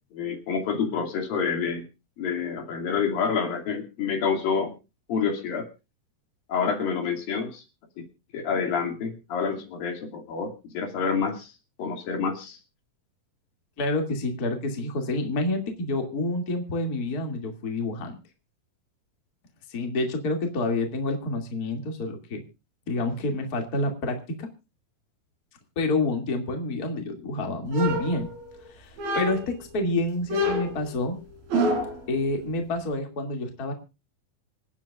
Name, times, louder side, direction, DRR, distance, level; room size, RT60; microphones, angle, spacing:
voice 1, 0.1-1.8 2.2-4.7 5.1-5.7 6.5-7.6 8.0-8.1 8.3-11.5 11.8-12.6, left 6 dB, 75° left, 2 dB, 4.2 m, -28 dB
voice 2, 13.8-18.2 19.7-22.4 22.9-24.5 25.8-28.3 28.7-31.2 32.1-33.7, left 2 dB, 30° left, 4 dB, 2.4 m, -28 dB
sound 1, 27.7-28.6 29.0-29.6 30.3-32.1, equal, 85° right, 5.7 m, -27 dB
27.0 x 9.6 x 2.4 m, 0.29 s
omnidirectional pair, 4.1 m